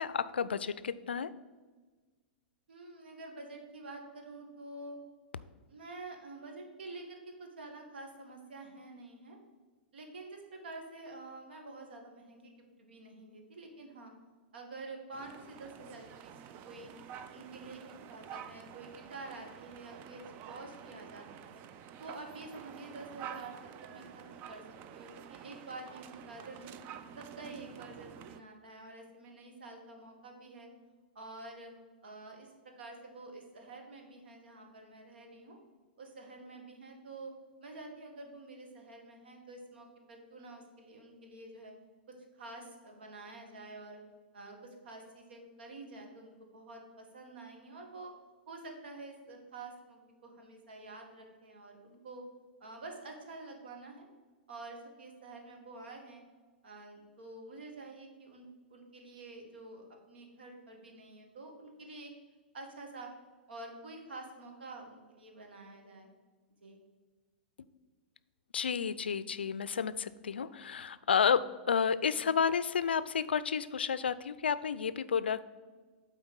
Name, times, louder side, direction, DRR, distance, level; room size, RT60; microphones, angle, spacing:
voice 1, 0.0-1.3 68.5-75.4, left 6 dB, 80° left, 16 dB, 0.4 m, -31 dB
voice 2, 2.7-5.0 5.7-9.4 9.9-14.1 14.5-16.9 17.3-21.6 22.0-23.5 23.8-24.6 24.9-26.9 27.2-30.7 31.2-31.7 32.0-35.6 36.0-37.3 37.6-41.7 42.1-44.0 44.3-48.1 48.5-52.2 52.6-54.1 54.5-56.2 56.6-62.1 62.5-63.1 63.5-66.1 66.6-66.8, right 2 dB, 70° right, 2 dB, 1.6 m, -48 dB
sound 1, 15.1-28.4, right 9 dB, 35° right, 0.4 m, -49 dB
7.9 x 4.2 x 5.2 m, 1.3 s
hypercardioid pair, 110°, 6 cm